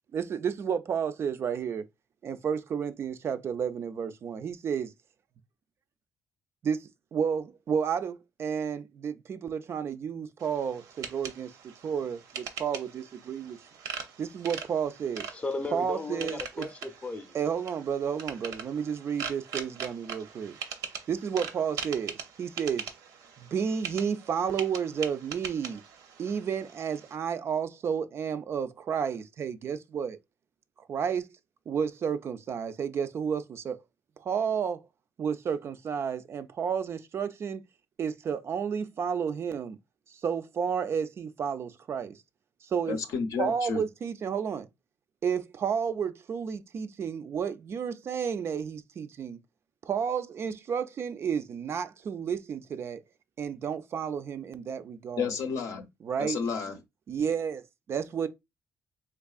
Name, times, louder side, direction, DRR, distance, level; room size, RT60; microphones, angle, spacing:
voice 1, 0.1-1.9 2.2-4.9 6.6-11.5 11.8-13.6 14.2-15.3 15.7-16.7 17.3-20.6 21.1-22.9 23.4-25.8 26.2-30.2 30.9-31.3 31.7-33.8 34.2-34.8 35.2-37.6 38.0-39.8 40.2-42.2 42.6-43.0 43.4-44.7 45.2-49.4 49.9-53.0 53.4-55.4 56.0-56.4 57.1-57.6 57.9-58.3, right 7 dB, 45° right, 0.3 m, -31 dB
sound 1, 10.4-27.1, right 6 dB, 80° right, 0.6 m, -42 dB
voice 2, 15.3-17.4, left 2 dB, 20° left, 0.6 m, -35 dB
voice 3, 42.9-43.8 55.2-55.9 56.2-56.8, left 6 dB, 75° left, 0.6 m, -31 dB
3.4 x 3.2 x 2.3 m
cardioid pair, 110°, 6 cm